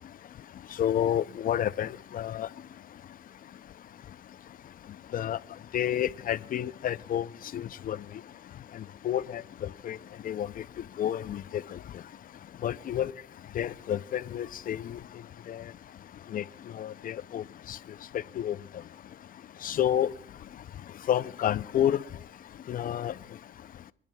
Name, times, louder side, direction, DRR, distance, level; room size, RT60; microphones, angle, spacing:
voice 1, 0.8-1.9 2.1-2.5 5.1-5.4 5.7-7.3 7.5-8.0 9.0-9.4 9.9-10.0 10.3-10.5 11.0-11.4 12.6-13.1 13.6-15.0 15.5-15.6 16.3-16.4 16.8-17.4 17.7-17.8 18.4-18.6 19.6-20.1 21.1-22.0 22.7-23.1, left 10 dB, 45° left, 17 dB, 0.4 m, -29 dB
24.5 x 10.5 x 2.2 m, 0.68 s
cardioid pair, 90°, 20 cm